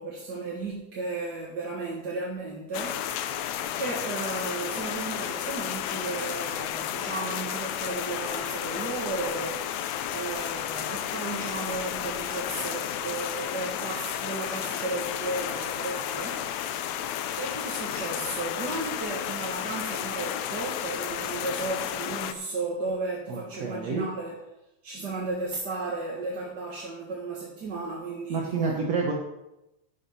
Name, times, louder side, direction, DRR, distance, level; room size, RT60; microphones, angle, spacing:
voice 1, 0.0-3.4 3.8-16.5 17.4-24.4 24.8-28.8, right 3 dB, 40° right, -4 dB, 1.9 m, -34 dB
sound 1, 2.7-22.3, left 10 dB, 75° left, 2.0 m, -32 dB
voice 2, 23.3-24.1 28.3-29.1, right 4 dB, 65° right, -1 dB, 2.3 m, -29 dB
11.0 x 7.9 x 5.6 m, 0.91 s
omnidirectional pair, 3.4 m